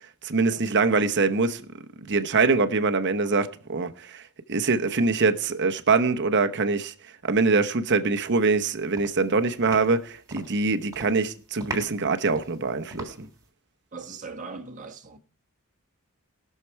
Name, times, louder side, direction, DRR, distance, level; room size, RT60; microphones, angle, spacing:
voice 1, 0.2-1.6 2.0-4.2 4.5-6.9 7.2-13.1, right 4 dB, 50° right, 0.9 m, -24 dB
sound 1, 8.4-8.7 9.0-10.6 10.9-11.3 11.6-13.4, right 2 dB, 15° right, 3.4 m, -39 dB
voice 2, 13.9-15.2, right 4 dB, 35° right, 1.5 m, -39 dB
20.0 x 6.7 x 4.6 m
head